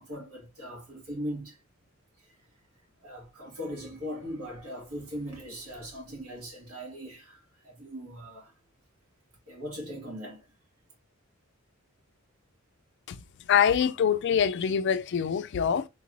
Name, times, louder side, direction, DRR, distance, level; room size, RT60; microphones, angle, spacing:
voice 1, 0.0-1.6 3.0-8.5 9.5-10.5, equal, 85° right, 2.2 m, -39 dB
voice 2, 13.5-15.9, left 8 dB, 50° left, 0.3 m, -24 dB
3.8 x 2.6 x 2.9 m
head